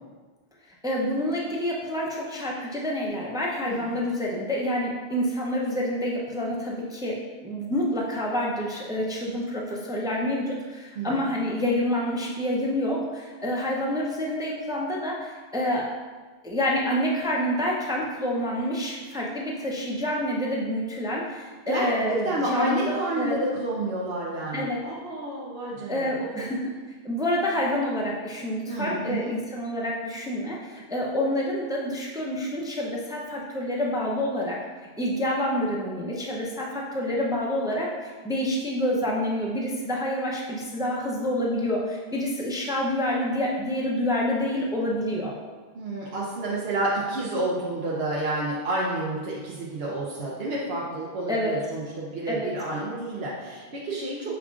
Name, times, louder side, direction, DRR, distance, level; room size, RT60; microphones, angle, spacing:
voice 1, 0.8-15.9 16.4-23.4 24.5-24.8 25.9-26.7 27.0-34.6 35.0-45.3 51.3-51.5 52.3-52.5, left 1 dB, 5° right, -3 dB, 0.4 m, -28 dB
voice 2, 3.6-4.0 11.0-11.3 21.7-21.9 22.2-26.5 28.7-29.3 45.7-54.4, right 2 dB, 70° right, -5 dB, 0.9 m, -30 dB
5.9 x 2.4 x 3.6 m, 1.4 s
omnidirectional pair, 1.1 m